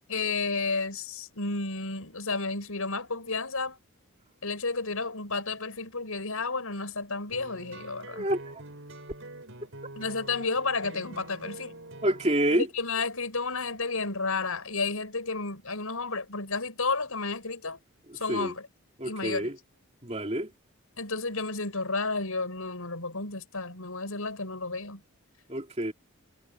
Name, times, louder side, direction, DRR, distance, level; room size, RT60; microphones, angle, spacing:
voice 1, 0.1-3.8 4.4-8.3 10.0-11.8 12.5-17.8 18.1-18.6 19.0-19.5 21.0-25.0, left 3 dB, 85° left, 5.5 m, -32 dB
sound 1, 7.3-12.4, right 2 dB, 60° right, 6.2 m, -45 dB
voice 2, 8.1-8.6 12.0-12.7 18.1-18.5 19.0-19.6 20.0-20.5 25.5-25.9, right 1 dB, 30° right, 2.9 m, -28 dB
head